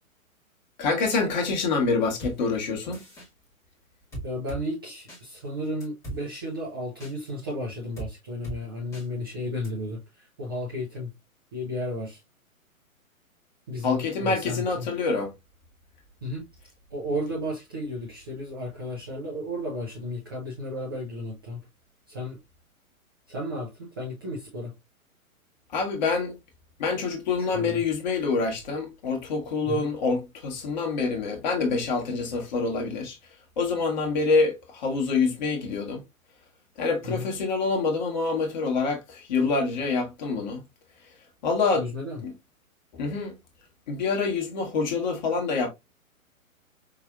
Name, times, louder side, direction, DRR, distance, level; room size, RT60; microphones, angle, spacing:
voice 1, 0.8-3.0 13.8-15.3 25.7-26.4 26.8-33.2 33.6-36.0 36.8-40.6 41.4-41.9 42.2-42.3 43.0-43.4 43.9-45.7, left 4 dB, 30° left, 1.1 m, -26 dB
sound 1, 2.2-2.4 2.9-3.3 4.1-4.6 5.1-5.2 5.8-6.2 7.0-7.1 8.0-8.1 8.4-8.6 8.9-9.1 9.6-9.7, right 2 dB, 5° left, 1.0 m, -37 dB
voice 2, 4.2-10.0 10.4-11.1 11.5-12.2 13.7-14.9 16.2-16.4 16.9-21.6 22.1-22.4 23.3-24.7 27.5-27.8 29.6-29.9 37.0-37.3 41.7-42.2, left 1 dB, 15° right, 0.5 m, -33 dB
4.9 x 2.6 x 2.3 m
figure-of-eight pair, 120°, 43 cm